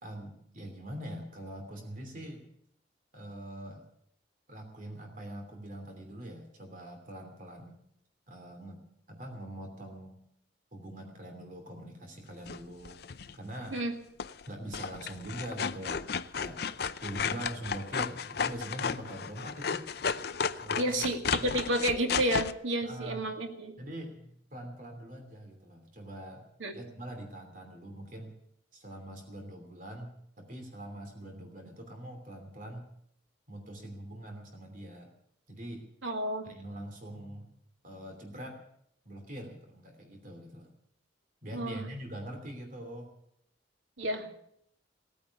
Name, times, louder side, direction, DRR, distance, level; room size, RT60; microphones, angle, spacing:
voice 1, 0.0-2.4 3.1-3.8 4.5-7.8 8.3-8.8 9.1-10.2 10.7-13.0 13.3-13.8 14.5-16.0 16.3-16.6 17.0-19.9 20.6-21.1 21.4-21.6 22.8-23.2 23.8-26.5 26.7-28.3 28.7-32.9 33.5-35.1 35.5-35.8 36.4-37.5 37.8-38.6 39.0-40.7 41.4-43.1, right 1 dB, 45° right, 4 dB, 2.9 m, -43 dB
sound 1, 12.5-13.3 14.2-14.5 14.7-22.5, left 6 dB, 55° left, 0.6 m, -34 dB
voice 2, 20.8-23.7 26.6-26.7 36.0-36.5 41.5-41.8 44.0-44.3, right 1 dB, 85° right, 4 dB, 2.3 m, -30 dB
17.5 x 9.4 x 8.3 m, 0.70 s
head